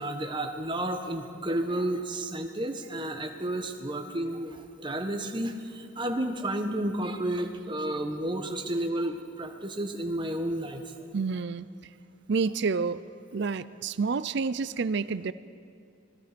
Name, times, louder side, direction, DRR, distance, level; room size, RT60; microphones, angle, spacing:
voice 1, 0.0-10.9, right 1 dB, 20° right, 5 dB, 1.3 m, -31 dB
voice 2, 11.1-11.7 12.3-13.0 13.3-15.3, right 4 dB, 55° right, 16 dB, 0.5 m, -28 dB
26.5 x 20.0 x 5.2 m, 2.4 s
head